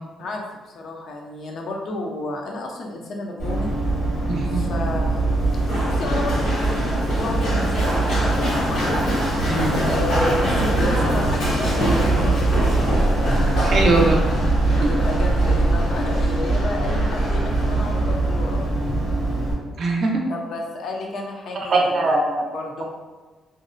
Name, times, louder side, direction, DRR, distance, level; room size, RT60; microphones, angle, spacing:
voice 1, 0.7-3.7 4.5-5.4 5.8-8.8 9.8-12.8 13.3-13.4 14.8-18.7 20.3-22.2 22.5-22.9, left 2 dB, 65° left, 1 dB, 0.5 m, -31 dB
Run, 3.4-19.5, right 1 dB, 90° left, 1.1 m, -21 dB
voice 2, 4.3-4.6 9.5-9.8 13.6-14.2 19.8-20.2 21.7-22.5, right 2 dB, 60° right, 0 dB, 0.5 m, -20 dB
2.6 x 2.0 x 2.5 m, 1.3 s
cardioid pair, 90°, 0 cm